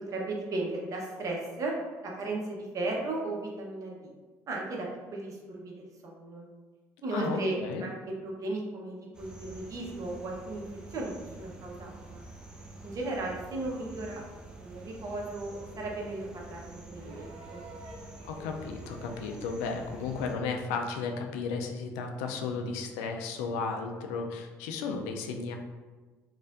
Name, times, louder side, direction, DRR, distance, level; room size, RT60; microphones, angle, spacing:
voice 1, 0.1-1.7 2.0-4.1 4.5-6.5 7.0-10.6 10.9-12.2 12.8-14.2 14.6-17.6, right 2 dB, 50° right, -1 dB, 0.9 m, -36 dB
voice 2, 7.1-7.8 18.2-25.6, left 4 dB, 90° left, 4 dB, 0.4 m, -34 dB
sound 1, 9.1-20.4, right 2 dB, 10° right, 0.6 m, -47 dB
sound 2, 16.9-20.5 21.8-21.9, right 2 dB, 75° right, 0.6 m, -49 dB
4.1 x 2.5 x 2.4 m, 1.3 s
supercardioid pair, 70°, 7 cm